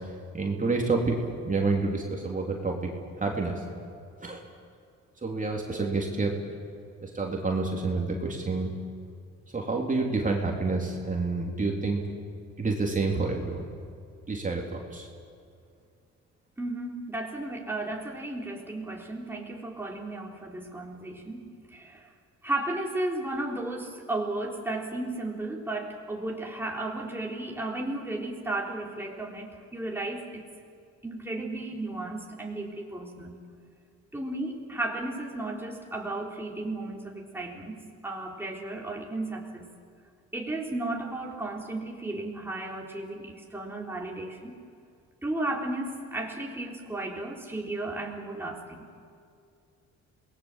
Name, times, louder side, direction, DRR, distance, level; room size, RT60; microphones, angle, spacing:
voice 1, 0.3-3.7 4.2-4.5 5.2-6.3 7.0-8.7 9.5-12.0 12.6-13.7 14.3-15.1, right 3 dB, 25° right, 0 dB, 3.5 m, -28 dB
voice 2, 16.6-21.4 21.7-22.1 22.4-30.4 31.0-33.4 34.1-39.7 40.3-44.5 45.2-48.8, right 2 dB, 5° right, -1 dB, 3.7 m, -34 dB
27.5 x 20.0 x 7.5 m, 2.4 s
cardioid pair, 90°, 30 cm